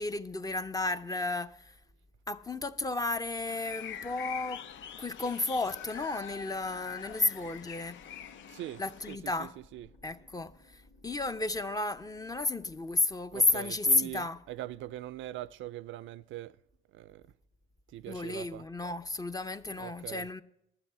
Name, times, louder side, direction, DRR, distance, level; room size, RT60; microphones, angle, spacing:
voice 1, 0.0-1.7 2.3-4.6 5.0-8.0 8.8-9.6 10.0-14.4 18.1-20.4, left 2 dB, 20° left, 0.6 m, -32 dB
sound 1, 3.4-9.2, left 9 dB, 75° left, 0.6 m, -44 dB
sound 2, 3.9-12.9, left 2 dB, 90° left, 2.1 m, -61 dB
voice 2, 8.5-8.8 9.1-9.9 13.3-16.6 16.9-17.3 17.9-18.6 19.7-20.3, right 14 dB, 75° right, 0.4 m, -42 dB
12.0 x 7.8 x 7.9 m
cardioid pair, 90°, 20 cm